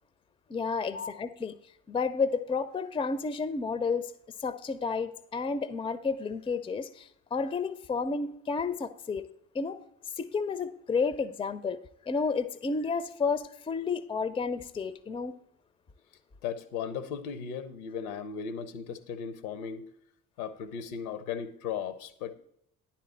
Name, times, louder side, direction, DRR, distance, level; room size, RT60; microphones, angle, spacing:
voice 1, 0.5-1.5 1.9-4.1 4.4-9.3 9.5-9.8 10.2-11.8 12.1-15.3, left 4 dB, 10° left, 0.5 m, -31 dB
voice 2, 16.4-19.8 20.4-22.3, left 7 dB, 70° left, 0.8 m, -36 dB
10.0 x 4.3 x 7.2 m
figure-of-eight pair, 45°, 43 cm